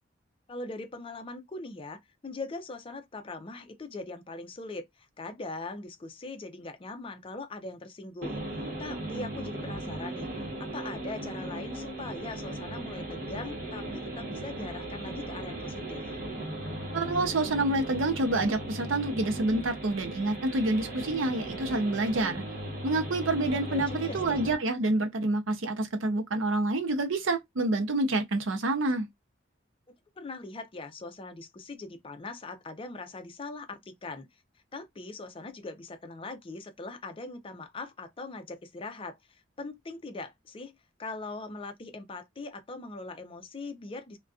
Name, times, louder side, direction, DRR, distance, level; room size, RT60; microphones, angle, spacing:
voice 1, 0.5-8.4 8.8-10.3 10.6-16.0 23.7-24.4 30.2-34.3 34.7-44.2, left 3 dB, 30° left, 0.5 m, -41 dB
sound 1, 8.2-24.6, right 1 dB, 45° right, 1.1 m, -37 dB
voice 2, 16.9-22.4 22.8-29.1, right 2 dB, 85° right, 0.6 m, -28 dB
2.5 x 2.2 x 2.3 m
head